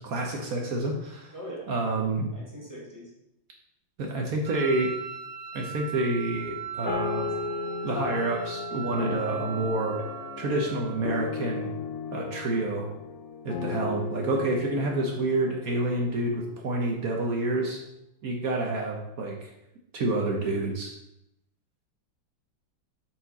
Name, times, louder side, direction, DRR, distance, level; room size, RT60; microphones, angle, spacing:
voice 1, 0.0-1.3 1.7-2.3 4.0-4.9 5.5-7.3 7.8-10.0 10.4-11.7 12.1-12.9 13.4-17.8 18.2-19.5 19.9-20.9, right 2 dB, 60° right, 0 dB, 1.0 m, -28 dB
voice 2, 1.3-1.7 2.3-3.1, equal, 10° right, -6 dB, 1.5 m, -41 dB
Wind instrument woodwind instrument, 4.4-11.0, right 7 dB, 80° right, 1.4 m, -39 dB
sound 1, 6.9-16.6, left 6 dB, 70° left, 1.1 m, -36 dB
5.7 x 4.6 x 4.0 m, 0.84 s
omnidirectional pair, 2.2 m